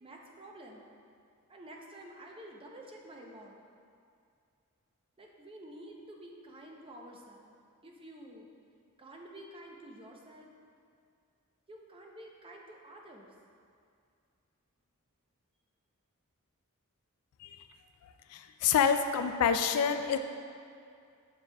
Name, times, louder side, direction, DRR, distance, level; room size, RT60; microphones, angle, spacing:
voice 1, 0.0-0.8 1.5-3.6 5.2-7.5 7.8-8.5 9.0-10.5 11.7-13.3, right 1 dB, 25° right, 0 dB, 0.5 m, -50 dB
voice 2, 18.3-20.2, left 7 dB, 80° left, 8 dB, 0.3 m, -27 dB
7.0 x 6.0 x 2.2 m, 2.4 s
head